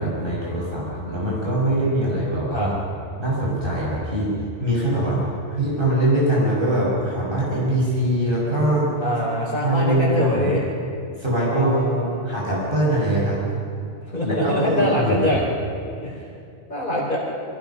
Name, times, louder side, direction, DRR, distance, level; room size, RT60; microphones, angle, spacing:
voice 1, 0.0-2.7 3.2-4.3 4.6-5.2 5.5-8.9 9.6-10.5 11.2-13.4 14.2-15.4, right 1 dB, 45° right, -6 dB, 6.5 m, -22 dB
voice 2, 9.0-10.6 11.5-12.2 14.1-15.4 16.0-16.2 16.7-17.2, left 1 dB, 40° left, -7 dB, 4.3 m, -24 dB
29.0 x 23.5 x 5.9 m, 2.4 s
omnidirectional pair, 1.2 m